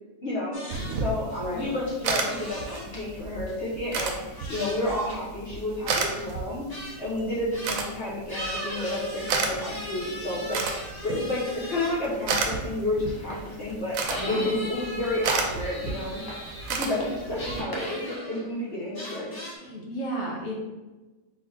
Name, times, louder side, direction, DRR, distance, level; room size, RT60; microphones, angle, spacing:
voice 1, 0.2-16.2 16.7-19.3, left 1 dB, 50° left, -8 dB, 1.2 m, -31 dB
sound 1, 0.5-1.0 1.3-1.6 1.9-3.0 3.5-3.6 4.1-5.2 5.6-5.8 6.2-6.3 6.7-7.0 7.5-7.8 8.3-12.2 12.5-18.7 18.9-19.5, equal, 20° left, 0.7 m, -38 dB
sound 2, 0.7-17.6, right 4 dB, 80° right, 1.0 m, -33 dB
voice 2, 1.4-1.7 14.2-14.5 19.6-20.7, equal, 85° left, -3 dB, 1.5 m, -32 dB
4.1 x 3.8 x 2.9 m, 1.2 s
omnidirectional pair, 1.4 m